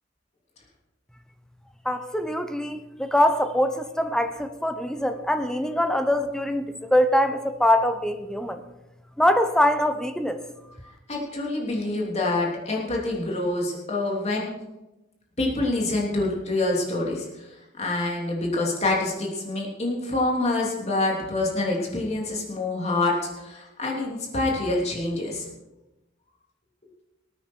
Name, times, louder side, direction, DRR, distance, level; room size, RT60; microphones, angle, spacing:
voice 1, 1.8-8.6 9.2-10.4, left 1 dB, 5° left, 8 dB, 0.8 m, -23 dB
voice 2, 11.1-14.5 15.4-17.5 17.8-25.4, left 2 dB, 35° left, -2 dB, 3.1 m, -26 dB
20.0 x 9.1 x 4.6 m, 0.98 s
head